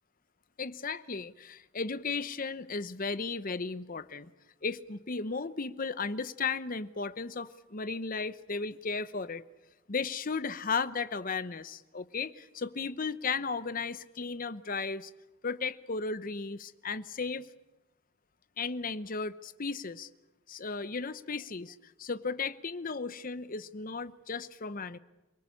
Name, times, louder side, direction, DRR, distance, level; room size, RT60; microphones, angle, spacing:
voice 1, 0.6-4.3 4.6-9.4 9.9-15.1 15.4-17.5 18.6-20.1 20.5-25.0, left 4 dB, 40° left, 14 dB, 0.8 m, -35 dB
28.0 x 19.5 x 8.5 m, 1.1 s
head